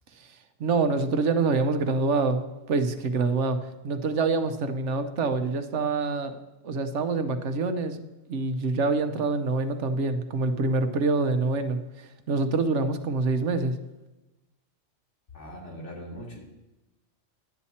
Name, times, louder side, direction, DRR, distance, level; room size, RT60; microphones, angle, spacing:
voice 1, 0.6-6.4 6.6-8.0 8.3-13.8, right 3 dB, 80° right, 9 dB, 1.1 m, -26 dB
voice 2, 15.3-16.4, equal, 80° left, -2 dB, 2.7 m, -40 dB
11.5 x 8.7 x 4.2 m, 1.0 s
omnidirectional pair, 1.2 m